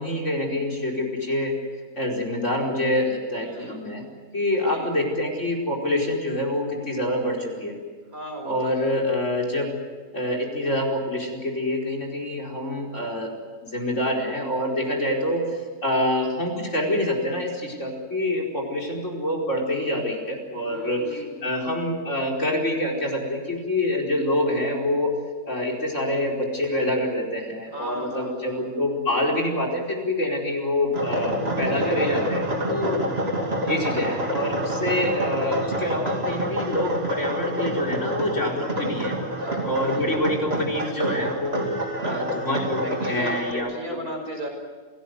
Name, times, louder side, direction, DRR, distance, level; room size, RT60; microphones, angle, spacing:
voice 1, 0.0-1.5 1.9-4.1 4.3-7.8 8.5-9.7 10.1-13.3 13.6-25.1 25.5-33.0 33.7-39.1 39.6-41.7 42.0-44.0, left 1 dB, 55° left, 2 dB, 5.2 m, -26 dB
voice 2, 3.4-3.8 4.7-4.9 8.1-8.9 15.1-15.5 20.6-21.7 27.7-28.7 31.7-32.4 32.8-33.2 38.7-39.0 39.4-40.4 42.8-44.5, right 1 dB, 75° right, 2 dB, 6.4 m, -36 dB
sound 1, 30.9-43.5, right 1 dB, 40° right, 3.1 m, -28 dB
27.0 x 18.0 x 9.5 m, 1.5 s
omnidirectional pair, 1.5 m